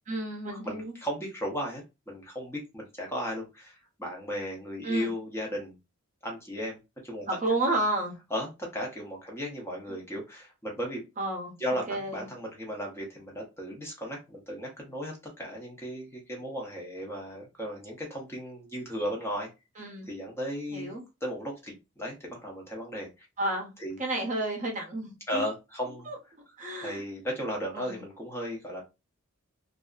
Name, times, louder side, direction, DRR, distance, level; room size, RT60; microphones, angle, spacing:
voice 1, 0.1-0.9 4.8-5.1 7.3-8.2 11.2-12.3 19.8-20.1 20.7-21.0 23.4-25.4 26.1-27.0 27.7-28.0, right 2 dB, 35° right, 0.7 m, -32 dB
voice 2, 0.6-5.8 6.2-6.8 7.0-7.3 8.3-11.0 11.6-19.5 19.8-20.9 21.2-23.3 23.8-24.0 25.3-26.1 26.8-28.8, equal, 10° left, 0.7 m, -35 dB
2.6 x 2.4 x 2.3 m
head